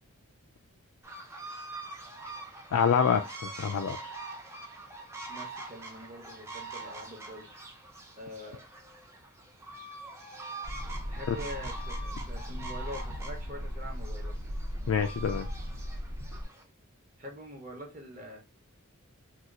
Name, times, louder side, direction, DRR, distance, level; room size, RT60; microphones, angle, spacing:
sound 1, 1.0-16.6, right 2 dB, 10° right, 0.4 m, -44 dB
voice 1, 2.7-4.1 11.3-11.4 14.9-15.5, left 7 dB, 75° left, 0.3 m, -27 dB
voice 2, 5.3-7.5 8.2-8.6 11.1-14.4 17.2-18.4, equal, 35° right, 0.9 m, -44 dB
sound 2, 10.6-16.5, equal, 80° right, 1.1 m, -37 dB
2.8 x 2.3 x 3.6 m
head